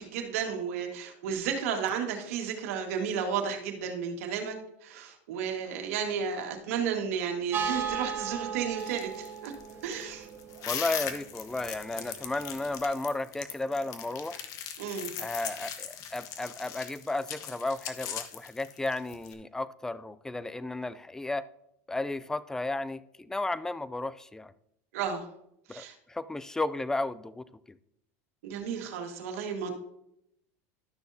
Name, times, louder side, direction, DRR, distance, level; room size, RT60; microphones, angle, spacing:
voice 1, 0.0-4.6 4.8-9.5 9.8-10.3 14.8-15.1 24.9-25.2 25.7-25.9 28.4-29.7, right 7 dB, 80° right, 1.7 m, -33 dB
sound 1, 7.5-12.8, right 6 dB, 30° right, 1.4 m, -37 dB
sound 2, 8.8-19.3, left 9 dB, 50° left, 1.1 m, -39 dB
voice 2, 10.7-14.4 15.2-21.4 21.9-24.5 25.7-27.4, left 2 dB, 5° left, 0.4 m, -33 dB
12.0 x 6.3 x 2.7 m
supercardioid pair, 115°, 7 cm